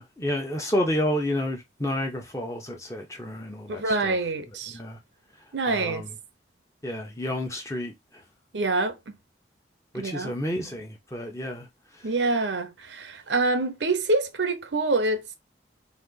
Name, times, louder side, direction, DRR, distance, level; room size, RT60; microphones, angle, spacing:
voice 1, 0.0-4.2 4.7-5.0 5.7-6.1 6.8-8.2 9.9-11.7 11.9-12.1, left 1 dB, 15° left, 1.1 m, -30 dB
voice 2, 3.7-4.8 5.5-6.1 8.5-9.2 9.9-10.3 12.0-15.3, right 3 dB, 75° right, 0.8 m, -26 dB
4.2 x 2.8 x 4.0 m
head